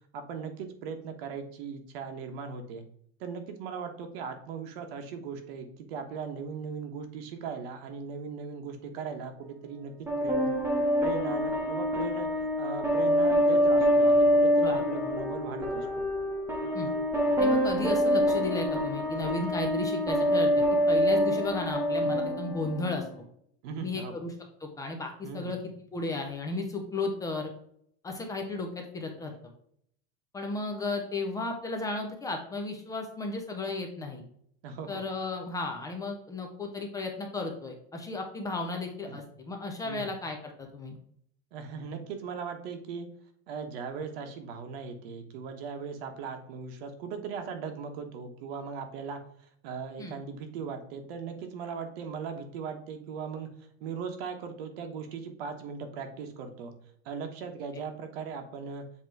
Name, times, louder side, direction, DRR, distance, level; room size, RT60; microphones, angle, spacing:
voice 1, 0.1-2.8 3.2-9.9 10.2-10.5 11.0-12.3 12.6-16.0 22.0-22.1 23.6-24.2 25.2-25.6 34.6-35.0 39.1-39.2 39.8-40.1 41.5-43.1 43.5-49.2 49.6-53.5 53.8-56.7 57.0-58.9, right 5 dB, 70° right, 6 dB, 1.3 m, -38 dB
sound 1, 10.1-23.1, equal, 10° right, 1.0 m, -26 dB
voice 2, 17.4-23.0 23.8-24.3 24.6-25.6 25.9-27.5 28.0-29.3 30.3-34.2 34.9-41.0 50.0-50.1, left 3 dB, 10° left, 2 dB, 0.5 m, -34 dB
7.3 x 3.0 x 4.6 m, 0.67 s
supercardioid pair, 175°, 31 cm